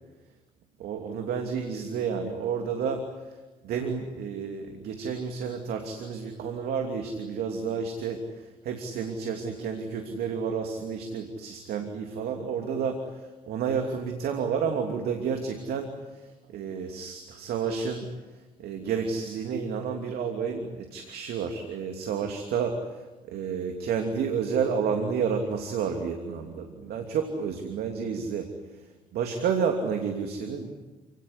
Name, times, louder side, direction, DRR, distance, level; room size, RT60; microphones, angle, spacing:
voice 1, 0.8-3.1 3.6-8.2 8.6-13.0 13.5-15.9 16.5-18.1 18.6-22.8 23.3-28.5 29.1-30.8, right 6 dB, 65° right, 4 dB, 2.9 m, -30 dB
29.5 x 18.5 x 9.8 m, 1.2 s
hypercardioid pair, 55°, 18 cm